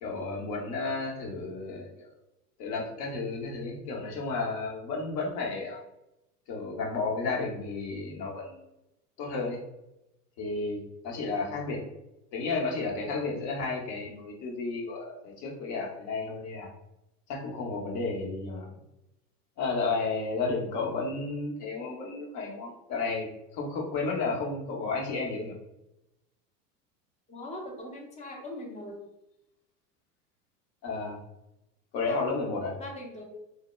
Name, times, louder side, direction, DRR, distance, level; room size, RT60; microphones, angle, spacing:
voice 1, 0.0-2.1 2.6-5.8 6.5-8.6 9.2-9.6 10.4-11.8 12.3-16.7 17.3-18.7 19.6-23.3 23.5-25.6 30.8-31.2 31.9-32.8, left 3 dB, 55° left, -1 dB, 0.9 m, -32 dB
voice 2, 27.3-29.0 32.1-32.2 32.8-33.2, left 1 dB, 15° left, 0 dB, 0.4 m, -40 dB
2.1 x 2.1 x 3.0 m, 0.88 s
hypercardioid pair, 95°, 48 cm